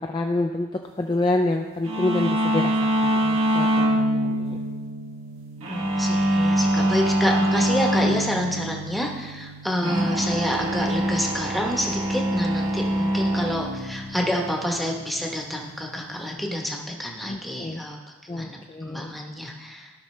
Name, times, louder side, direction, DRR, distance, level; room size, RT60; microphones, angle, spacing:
voice 1, 0.0-2.7 3.0-4.6 9.7-9.9 17.3-17.8 18.3-19.1, left 2 dB, 20° left, 3 dB, 0.3 m, -27 dB
sound 1, 1.9-16.3, equal, 70° right, 1.5 m, -25 dB
voice 2, 5.7-18.0 18.2-18.6 18.9-19.9, equal, ahead, 0 dB, 0.9 m, -28 dB
15.5 x 5.8 x 3.2 m, 1.3 s
head